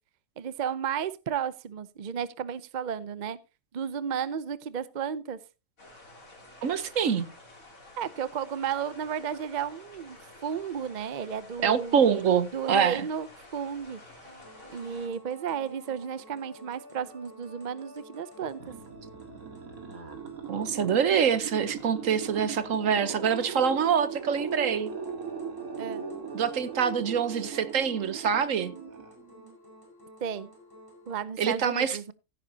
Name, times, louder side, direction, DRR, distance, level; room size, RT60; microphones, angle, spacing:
voice 1, 0.4-3.4 3.7-5.4 8.0-12.0 12.5-13.3 13.5-14.0 14.7-18.6 25.8-26.0 30.2-30.5 31.1-32.1, right 8 dB, 45° right, 0.6 m, -33 dB
sound 1, 5.8-15.1, left 1 dB, 75° left, 3.8 m, -51 dB
voice 2, 6.6-7.3 11.6-13.0 20.5-24.9 26.3-28.7 31.4-32.0, right 7 dB, 70° right, 1.4 m, -25 dB
sound 2, 14.2-31.2, equal, 15° right, 5.1 m, -51 dB
sound 3, 18.4-29.5, right 6 dB, 85° right, 2.2 m, -39 dB
15.5 x 9.6 x 2.8 m
omnidirectional pair, 1.5 m